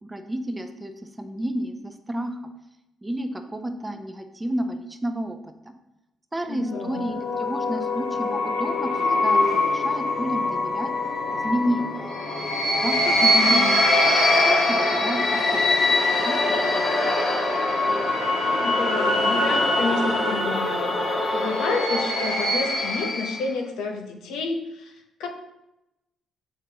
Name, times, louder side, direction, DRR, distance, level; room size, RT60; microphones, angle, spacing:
voice 1, 0.0-0.9 1.2-2.4 3.0-5.7 6.3-10.9 11.4-12.1 12.8-13.8 14.0-14.1 14.4-16.9, right 1 dB, 15° right, 6 dB, 0.7 m, -31 dB
voice 2, 6.5-7.1 13.2-13.8 18.6-21.0 21.3-24.9 25.2-25.3, left 3 dB, 90° left, 3 dB, 0.9 m, -30 dB
sound 1, 6.7-23.5, left 2 dB, 65° left, 1.5 m, -23 dB
7.1 x 5.3 x 2.9 m, 0.91 s
cardioid pair, 90°, 0 cm